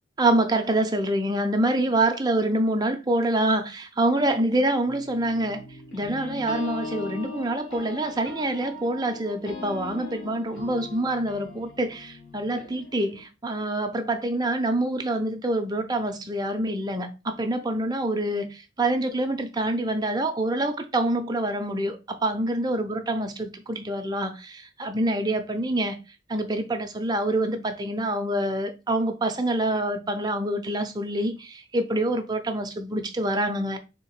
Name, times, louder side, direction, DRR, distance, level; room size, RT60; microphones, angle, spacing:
voice 1, 0.2-5.6 5.9-26.0 26.3-33.8, right 1 dB, 20° right, 0.5 m, -26 dB
sound 1, 4.8-13.2, left 3 dB, 65° left, 1.3 m, -40 dB
3.6 x 2.8 x 4.6 m
head